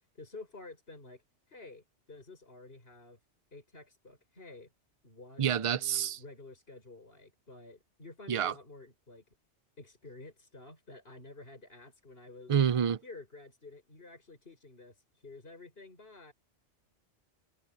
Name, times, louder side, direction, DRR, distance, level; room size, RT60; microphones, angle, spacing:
voice 1, 0.2-1.2 1.5-3.2 3.5-4.7 5.0-5.4 5.7-9.2 9.8-12.5 13.0-16.3, left 3 dB, 55° left, 5.9 m, -51 dB
voice 2, 5.4-6.2 8.3-8.5 12.5-13.0, right 8 dB, 45° right, 0.4 m, -27 dB
omnidirectional pair, 1.2 m